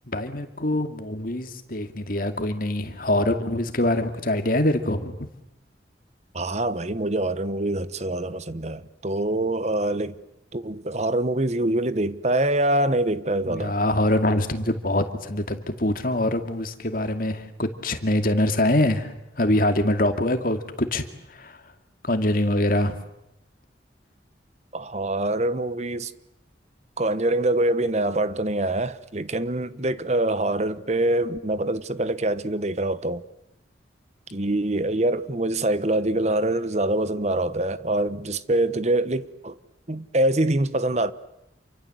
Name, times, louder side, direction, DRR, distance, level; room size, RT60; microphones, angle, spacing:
voice 1, 0.1-5.3 13.4-21.0 21.4-21.6 22.0-23.0, left 1 dB, 50° left, 2.4 m, -24 dB
voice 2, 6.3-10.1 10.5-13.8 24.7-26.1 27.0-33.2 34.3-39.6 39.9-41.1, right 1 dB, 35° right, 1.1 m, -24 dB
28.5 x 24.5 x 7.9 m
head